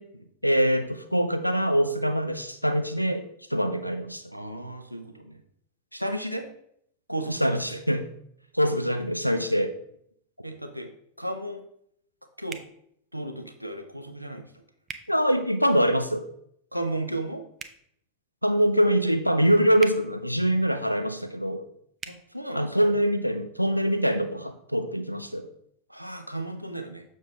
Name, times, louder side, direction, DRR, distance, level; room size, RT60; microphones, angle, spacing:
voice 1, 0.4-4.3 7.3-8.0 8.5-9.7 15.1-16.2 18.4-21.6 22.5-25.5, equal, 90° left, 9 dB, 0.6 m, -24 dB
voice 2, 4.3-5.4 5.9-6.5 7.1-7.8 10.4-10.9 11.2-11.6 12.4-12.6 13.1-14.5 16.7-17.5 22.1-22.9 25.9-27.0, right 1 dB, 90° right, 6 dB, 0.7 m, -34 dB
sound 1, 12.5-12.7 14.8-15.0 17.5-17.8 19.8-20.0 22.0-22.2, right 6 dB, 20° right, 0.5 m, -39 dB
6.5 x 6.5 x 3.3 m, 0.70 s
figure-of-eight pair, 90°, 0 cm